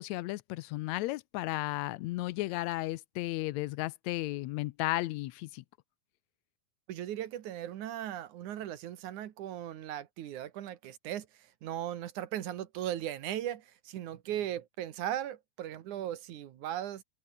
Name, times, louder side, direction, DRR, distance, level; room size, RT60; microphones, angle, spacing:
voice 1, 0.0-5.6, left 18 dB, 80° left, 1.8 m, -34 dB
voice 2, 6.9-11.3 11.6-17.0, right 11 dB, 80° right, 2.8 m, -37 dB
omnidirectional pair, 3.4 m